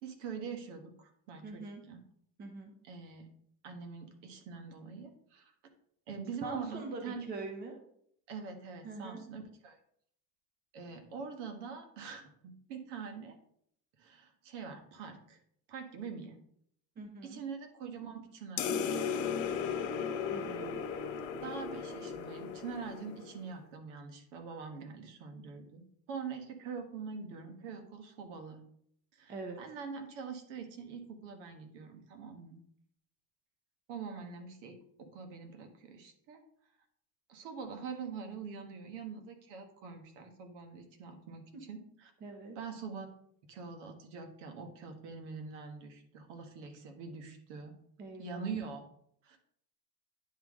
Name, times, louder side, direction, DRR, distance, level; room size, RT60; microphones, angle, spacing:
voice 1, 0.0-2.0 2.8-3.3 3.6-5.5 6.1-7.2 8.3-9.8 10.7-13.4 14.0-15.4 15.7-16.4 17.2-18.9 21.4-28.6 29.1-32.6 33.9-36.4 37.3-42.1 42.5-43.1 43.4-47.7 48.2-48.8 49.2-49.4, right 5 dB, 70° right, 5 dB, 1.5 m, -44 dB
voice 2, 1.4-1.8 2.4-2.7 6.4-7.8 8.8-9.2 17.0-17.4 20.3-20.8 29.3-29.6 41.5-41.6 42.2-42.6 48.0-48.5, right 3 dB, 25° right, 3 dB, 1.0 m, -43 dB
sound 1, 18.6-23.4, left 6 dB, 75° left, 1.2 m, -36 dB
9.9 x 3.8 x 3.7 m, 0.68 s
supercardioid pair, 155°, 37 cm